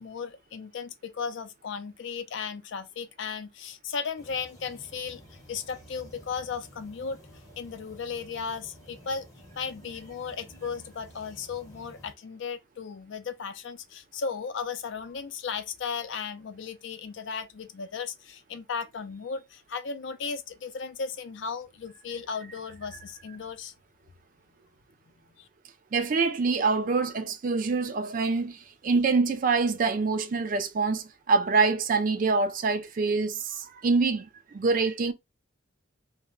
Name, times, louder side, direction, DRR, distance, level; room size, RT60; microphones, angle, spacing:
voice 1, 0.0-5.2 5.5-7.2 7.6-9.3 9.5-23.7 25.4-25.5, left 5 dB, 60° left, 0.4 m, -36 dB
sound 1, 4.2-12.1, equal, 15° left, 0.7 m, -51 dB
voice 2, 25.9-35.1, right 4 dB, 40° right, 0.3 m, -25 dB
2.1 x 2.1 x 3.6 m
head